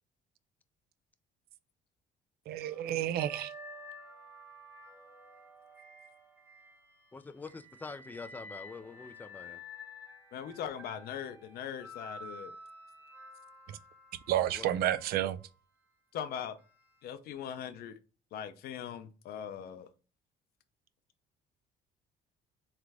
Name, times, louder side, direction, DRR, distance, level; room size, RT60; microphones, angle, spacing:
voice 1, 2.5-3.5 13.7-13.8 14.3-15.4, right 12 dB, 65° right, 0.4 m, -30 dB
sound 1, 2.6-7.0 7.4-15.5 16.6-16.8, left 1 dB, 10° right, 1.1 m, -51 dB
voice 2, 7.1-9.6 14.4-14.8, left 4 dB, 10° left, 0.4 m, -45 dB
voice 3, 10.3-12.6 16.1-16.6 17.0-17.9 18.3-19.9, left 9 dB, 65° left, 0.6 m, -40 dB
3.8 x 3.3 x 3.4 m
cardioid pair, 110°, 17 cm